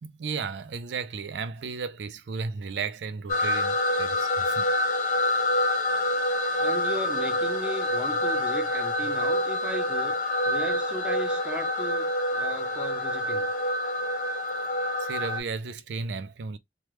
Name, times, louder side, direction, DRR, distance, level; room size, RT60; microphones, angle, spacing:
voice 1, 0.0-4.7 15.0-16.6, right 5 dB, 75° right, 0.4 m, -34 dB
sound 1, 3.3-15.4, left 1 dB, 45° left, 0.7 m, -27 dB
voice 2, 6.6-10.2 10.5-13.5, right 1 dB, 5° right, 0.5 m, -37 dB
3.2 x 2.2 x 3.0 m
head